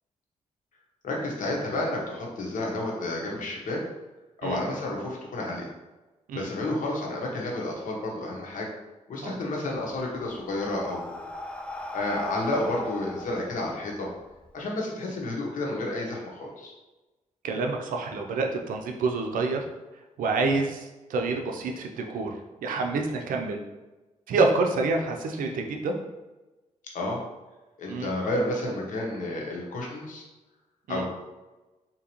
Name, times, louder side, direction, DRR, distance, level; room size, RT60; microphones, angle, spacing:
voice 1, 1.0-3.8 4.4-5.7 6.3-8.7 9.1-11.2 11.9-14.1 14.5-16.7 26.9-27.2 27.8-30.2 30.9-31.1, left 1 dB, 75° left, -2 dB, 1.0 m, -31 dB
Breathing, 9.7-14.5, left 1 dB, 10° left, 0.3 m, -38 dB
voice 2, 17.4-19.6 20.2-22.3 22.6-23.6 24.3-25.9 27.9-28.1 30.9-31.0, right 3 dB, 90° right, 3 dB, 0.5 m, -27 dB
3.7 x 2.8 x 3.0 m, 1.1 s
cardioid pair, 90°, 14 cm